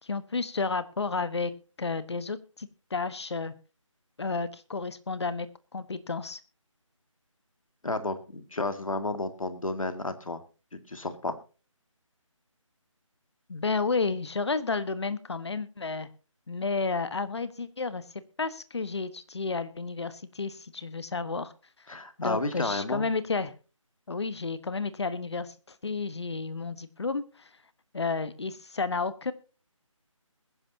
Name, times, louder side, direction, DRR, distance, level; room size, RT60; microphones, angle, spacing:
voice 1, 0.0-1.5 1.8-3.5 4.2-5.5 5.7-6.4 13.5-16.1 16.5-18.0 18.4-21.5 22.2-23.5 24.1-27.5 27.9-29.3, left 4 dB, 55° left, 14 dB, 1.3 m, -31 dB
voice 2, 7.8-10.4 10.7-11.3 21.9-23.1, left 2 dB, 75° left, 9 dB, 2.2 m, -32 dB
21.5 x 10.5 x 2.8 m, 0.33 s
figure-of-eight pair, 165°, 17 cm